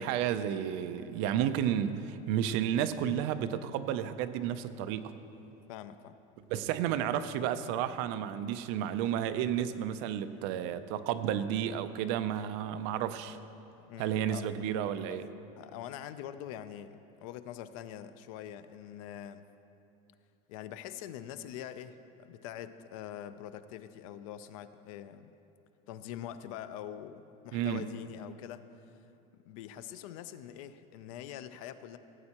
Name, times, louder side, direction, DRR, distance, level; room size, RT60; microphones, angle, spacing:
voice 1, 0.0-5.1 6.5-13.4 14.0-15.2 27.5-27.9, right 10 dB, 50° right, 11 dB, 0.4 m, -32 dB
voice 2, 5.7-6.2 13.9-14.5 15.6-19.4 20.5-25.3 25.9-28.7 29.3-32.0, left 10 dB, 65° left, 12 dB, 0.5 m, -44 dB
16.0 x 8.7 x 2.9 m, 2.8 s
cardioid pair, 175°, 19 cm